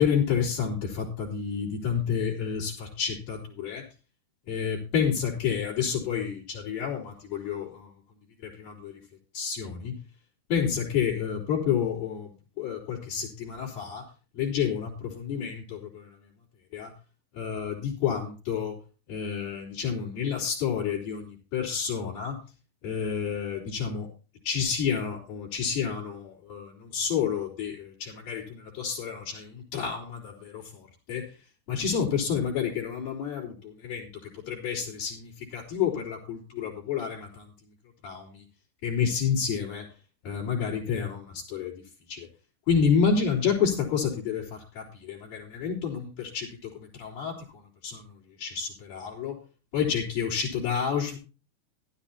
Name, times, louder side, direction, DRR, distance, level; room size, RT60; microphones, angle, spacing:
voice 1, 0.0-3.8 4.5-7.9 8.4-9.0 9.3-10.0 10.5-12.3 12.6-14.1 14.4-16.2 16.7-16.9 17.4-18.8 19.1-22.4 22.8-24.1 24.4-31.3 31.7-37.5 38.0-38.4 38.8-39.9 40.2-41.7 42.1-42.3 42.7-47.4 47.8-48.1 48.4-49.4 49.7-51.2, left 7 dB, 60° left, -7 dB, 5.2 m, -29 dB
15.5 x 12.5 x 2.9 m, 0.34 s
omnidirectional pair, 4.7 m